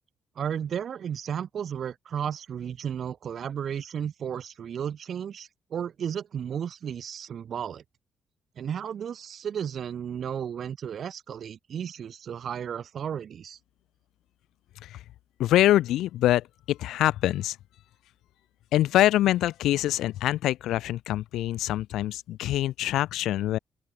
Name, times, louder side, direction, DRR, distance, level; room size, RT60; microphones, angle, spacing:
voice 1, 0.4-7.8 8.6-13.6, right 8 dB, 60° right, 2.4 m, -33 dB
voice 2, 15.4-17.6 18.7-23.6, left 14 dB, 85° left, 0.5 m, -24 dB
open air
cardioid pair, 90°, 0 cm